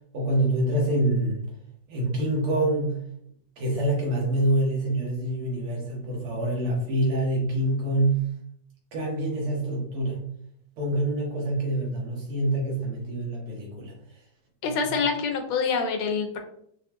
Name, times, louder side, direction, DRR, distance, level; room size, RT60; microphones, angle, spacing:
voice 1, 0.1-1.4 1.9-2.9 3.6-8.2 8.9-10.2 10.8-13.9 14.6-14.7, right 1 dB, 90° right, -2 dB, 2.2 m, -26 dB
voice 2, 14.6-16.4, left 5 dB, 80° left, 4 dB, 1.5 m, -26 dB
5.6 x 2.2 x 2.9 m, 0.69 s
omnidirectional pair, 2.3 m